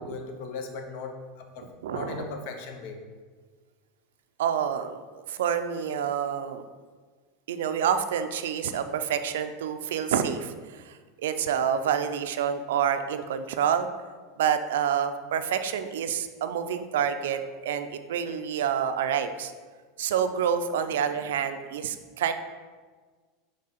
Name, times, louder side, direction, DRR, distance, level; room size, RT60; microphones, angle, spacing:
voice 1, 0.0-3.0, left 4 dB, 65° left, 4 dB, 0.6 m, -38 dB
voice 2, 1.8-2.2 4.4-6.6 7.5-13.9 14.4-19.5 20.0-22.3, right 8 dB, 85° right, 9 dB, 0.3 m, -28 dB
3.7 x 3.3 x 4.1 m, 1.5 s
supercardioid pair, 130°, 0 cm